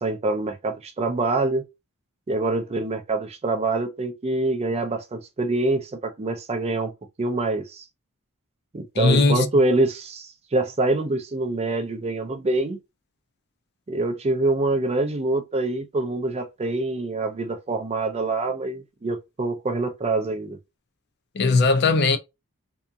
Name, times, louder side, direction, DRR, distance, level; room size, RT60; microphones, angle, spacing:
voice 1, 0.0-1.6 2.3-6.9 7.2-7.8 8.7-12.8 13.9-20.6, right 2 dB, 30° right, 0.4 m, -25 dB
voice 2, 9.0-9.5 21.4-22.2, left 3 dB, 50° left, 0.5 m, -18 dB
2.7 x 2.4 x 2.2 m
head